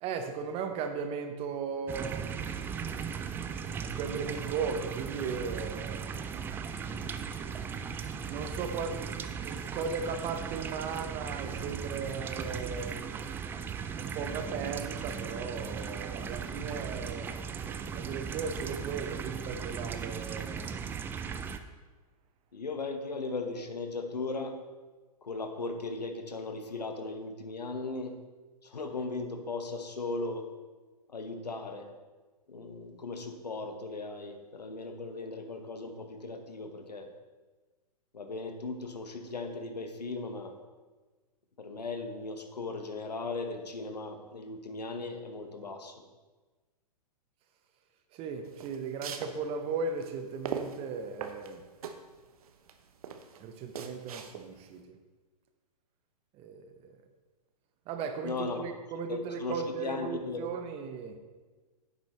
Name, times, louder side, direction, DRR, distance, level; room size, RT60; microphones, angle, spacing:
voice 1, 0.0-2.5 3.8-6.1 8.3-13.1 14.0-20.7 48.1-51.6 53.4-55.0 56.3-57.1 57.9-61.2, right 5 dB, 30° right, 7 dB, 0.9 m, -37 dB
sound 1, 1.9-21.6, right 6 dB, 10° right, 0.3 m, -37 dB
voice 2, 22.5-24.5 25.2-28.1 28.6-30.5 31.1-31.9 32.5-37.1 38.1-40.6 41.6-46.0 58.2-58.6 59.1-60.4, left 3 dB, 85° left, 6 dB, 1.1 m, -37 dB
sound 2, 48.4-54.7, right 6 dB, 65° right, 0.9 m, -41 dB
10.5 x 8.0 x 3.3 m, 1.3 s
hypercardioid pair, 115°, 20 cm